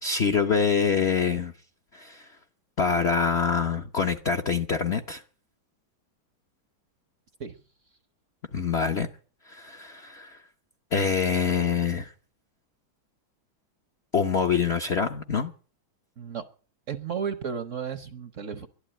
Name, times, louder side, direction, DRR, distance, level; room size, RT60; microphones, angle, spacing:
voice 1, 0.0-1.5 1.9-2.3 2.8-5.2 8.5-9.1 9.5-10.4 10.9-12.1 14.1-15.5, left 6 dB, 55° left, 4 dB, 0.7 m, -25 dB
voice 2, 16.9-18.7, right 7 dB, 55° right, 9 dB, 0.8 m, -33 dB
12.0 x 11.5 x 8.9 m, 0.43 s
omnidirectional pair, 2.2 m